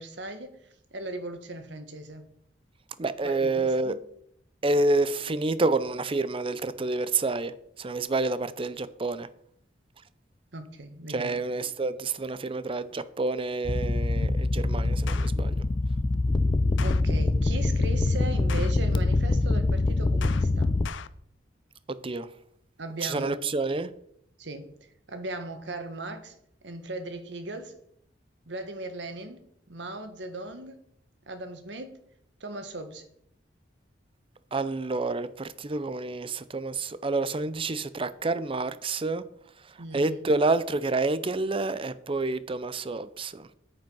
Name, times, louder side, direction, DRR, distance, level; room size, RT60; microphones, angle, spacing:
voice 1, 0.0-2.2 3.2-4.0 10.5-11.4 16.8-20.7 22.8-23.4 24.4-24.6 25.1-26.3 26.6-27.7 28.5-29.4 29.7-30.8 31.3-32.0 32.4-33.0 39.8-40.2, right 2 dB, 70° right, 1.5 m, -38 dB
voice 2, 3.0-4.0 4.6-9.3 11.1-15.6 21.9-22.3 23.0-23.9 34.5-39.2 39.9-43.5, right 3 dB, 30° right, 0.5 m, -28 dB
sound 1, 13.6-20.9, left 2 dB, 25° left, 0.4 m, -24 dB
sound 2, 14.2-14.5 14.9-15.3 16.1-17.0 17.9-19.2 19.6-21.1, left 5 dB, 90° left, 0.5 m, -39 dB
9.0 x 8.0 x 5.5 m
head